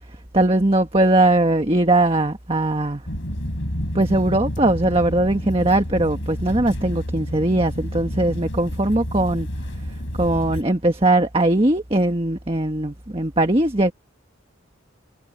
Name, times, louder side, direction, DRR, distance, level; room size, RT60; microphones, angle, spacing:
voice 1, 0.3-3.0 3.9-9.5 10.2-13.9, right 1 dB, 30° right, 1.5 m, -20 dB
sound 1, 3.1-10.6, equal, 65° left, 6.2 m, -29 dB
head